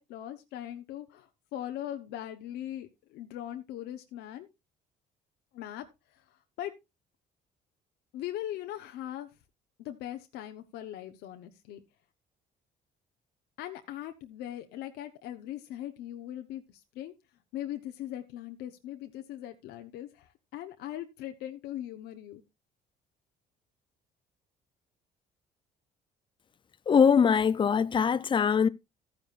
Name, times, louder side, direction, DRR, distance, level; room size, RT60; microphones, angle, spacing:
voice 1, 0.0-4.5 5.5-5.8 6.1-6.7 8.1-9.3 9.8-11.8 13.6-17.1 17.5-22.4, left 12 dB, 85° left, 0.9 m, -40 dB
voice 2, 26.9-28.7, left 6 dB, 30° left, 0.5 m, -22 dB
12.5 x 9.7 x 2.5 m
cardioid pair, 110°, 17 cm